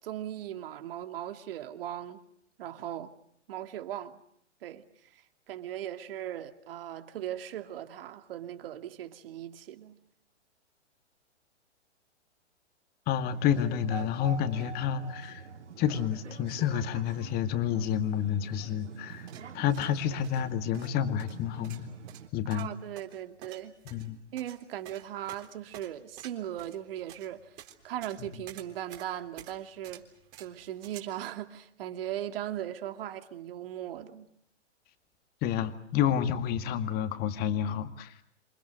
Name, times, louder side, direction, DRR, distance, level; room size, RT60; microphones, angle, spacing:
voice 1, 0.0-2.2 2.6-3.1 3.5-4.2 4.6-4.8 5.5-10.0 22.5-23.7 24.3-27.5 27.8-30.1 30.4-34.3, right 11 dB, 50° right, 2.5 m, -38 dB
voice 2, 13.1-15.4 15.8-19.3 19.5-21.9 22.3-22.7 23.9-24.2 28.2-28.3 35.4-38.1, left 9 dB, 25° left, 2.2 m, -29 dB
sound 1, 13.3-22.3, right 7 dB, 75° right, 2.5 m, -46 dB
sound 2, 19.1-31.0, right 12 dB, 30° right, 3.7 m, -51 dB
28.0 x 27.5 x 6.5 m
hypercardioid pair, 130°, 36 cm